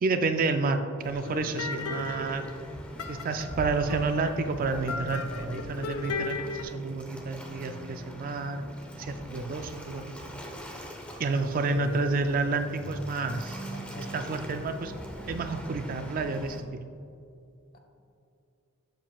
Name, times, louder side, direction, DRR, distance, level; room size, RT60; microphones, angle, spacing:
voice 1, 0.0-2.5 3.1-8.6 9.0-10.2 11.2-13.6 14.0-14.9 15.3-16.8, right 3 dB, 40° right, 8 dB, 0.3 m, -30 dB
Waves surf, 1.0-16.6, equal, 5° left, 0.7 m, -42 dB
sound 1, 1.2-6.6, left 4 dB, 80° left, 0.5 m, -36 dB
voice 2, 11.6-12.1 13.7-14.2 17.7-17.8, equal, 40° left, 3 dB, 0.9 m, -41 dB
7.4 x 7.1 x 2.3 m, 2.5 s
head